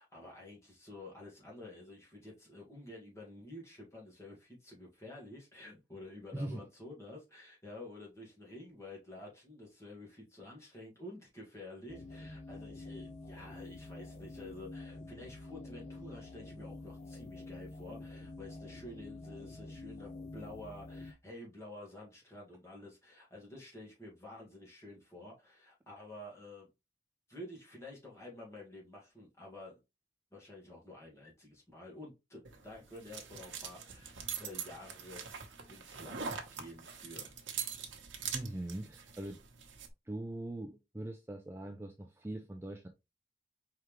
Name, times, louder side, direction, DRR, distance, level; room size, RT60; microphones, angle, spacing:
voice 1, 0.0-26.7 27.3-29.8 30.3-37.4, left 1 dB, 15° left, 1.8 m, -50 dB
voice 2, 6.3-6.7 38.3-39.4 40.0-42.9, right 1 dB, 15° right, 0.4 m, -41 dB
sound 1, 11.9-21.1, left 2 dB, 40° left, 0.5 m, -47 dB
sound 2, 32.4-39.9, right 7 dB, 85° right, 1.0 m, -43 dB
4.6 x 3.6 x 3.1 m
head